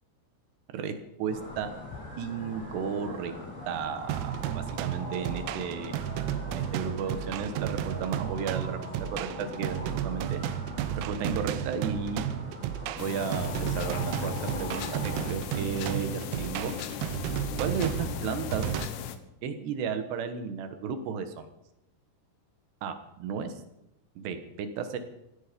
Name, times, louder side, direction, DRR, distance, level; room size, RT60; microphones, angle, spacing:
voice 1, 1.2-1.7 2.2-3.3 3.7-5.9 6.5-8.8 9.2-10.4 11.1-12.2 13.0-16.7 17.6-18.7 19.4-21.5 22.8-23.5 24.2-25.0, right 6 dB, 65° right, 9 dB, 3.0 m, -33 dB
sound 1, 1.3-15.3, left 1 dB, 45° left, 8.8 m, -41 dB
sound 2, 4.1-18.9, right 12 dB, 90° right, 3.4 m, -33 dB
sound 3, 13.0-19.2, left 10 dB, 75° left, 2.5 m, -37 dB
17.5 x 16.0 x 5.2 m, 0.86 s
omnidirectional pair, 5.9 m